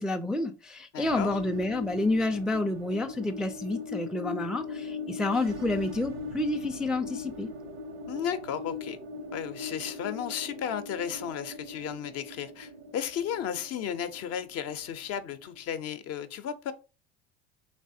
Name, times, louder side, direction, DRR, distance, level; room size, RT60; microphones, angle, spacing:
voice 1, 0.0-7.5, left 2 dB, ahead, 0.3 m, -29 dB
voice 2, 0.9-1.3 8.1-9.0 9.3-16.7, left 9 dB, 55° left, 0.6 m, -34 dB
sound 1, 1.0-15.7, left 3 dB, 85° right, 0.8 m, -40 dB
3.3 x 3.3 x 2.6 m
hypercardioid pair, 75°, 31 cm